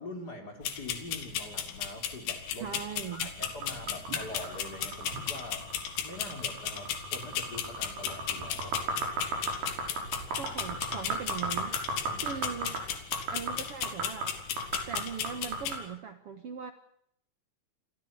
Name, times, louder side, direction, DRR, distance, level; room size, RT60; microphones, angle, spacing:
voice 1, 0.0-2.8 3.1-5.7 6.0-8.8 12.1-12.3, left 1 dB, 25° left, 3 dB, 4.0 m, -44 dB
sound 1, 0.6-15.8, left 9 dB, 90° left, 4.0 m, -36 dB
voice 2, 2.6-3.3 10.4-12.8 13.3-14.4 14.9-16.7, right 7 dB, 90° right, 9 dB, 1.2 m, -40 dB
sound 2, 3.4-15.8, right 2 dB, 75° right, 7.6 m, -36 dB
29.0 x 14.0 x 8.5 m, 0.70 s
omnidirectional pair, 4.8 m